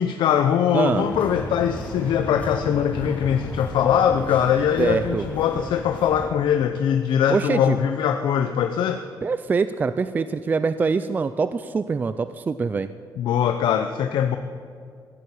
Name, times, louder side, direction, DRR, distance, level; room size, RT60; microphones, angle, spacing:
voice 1, 0.0-9.0 13.2-14.4, left 8 dB, 80° left, 7 dB, 0.7 m, -22 dB
voice 2, 0.7-1.1 4.8-5.2 7.3-7.8 9.2-12.9, right 4 dB, 20° right, 12 dB, 0.3 m, -24 dB
sound 1, 1.0-6.3, left 1 dB, 20° left, 3.2 m, -35 dB
15.0 x 8.8 x 8.5 m, 2.2 s
cardioid pair, 170°, 8 cm